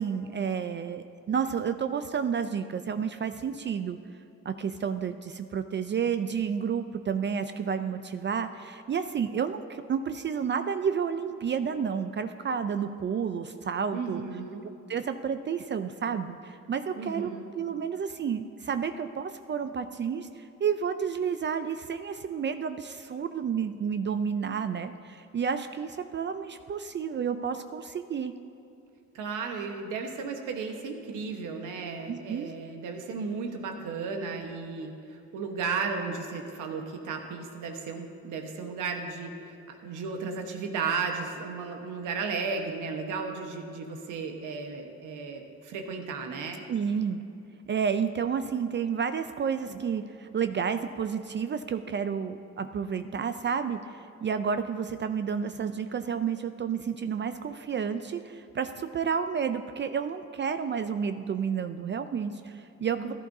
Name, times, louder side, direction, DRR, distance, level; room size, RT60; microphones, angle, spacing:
voice 1, 0.0-4.0 4.5-14.2 14.9-17.3 17.5-28.3 32.1-32.5 46.7-47.2 47.7-63.1, right 7 dB, 40° right, 9 dB, 0.4 m, -31 dB
voice 2, 13.9-14.7 17.0-17.5 29.1-46.6 63.0-63.1, right 5 dB, 85° right, 3 dB, 1.3 m, -34 dB
15.5 x 11.0 x 2.7 m, 2.8 s
cardioid pair, 90°, 30 cm